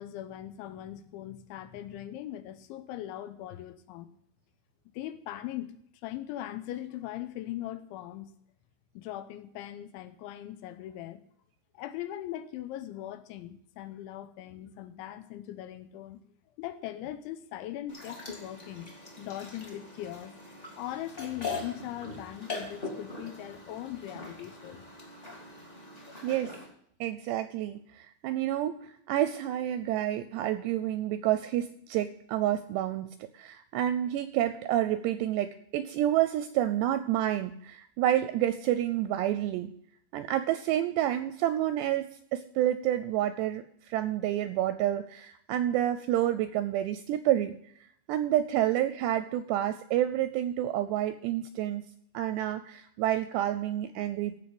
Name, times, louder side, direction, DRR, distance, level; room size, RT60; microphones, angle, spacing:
voice 1, 0.0-4.1 4.9-5.7 6.0-8.3 8.9-11.2 11.7-16.2 16.6-18.9 19.2-20.4 20.8-24.8, left 13 dB, 85° left, 11 dB, 3.2 m, -40 dB
sound 1, 17.9-26.7, left 3 dB, 20° left, 1.8 m, -42 dB
voice 2, 26.2-26.6 27.0-39.7 40.1-47.6 48.1-51.8 52.1-54.3, right 12 dB, 80° right, 12 dB, 2.5 m, -29 dB
15.5 x 5.4 x 7.7 m, 0.68 s
omnidirectional pair, 5.4 m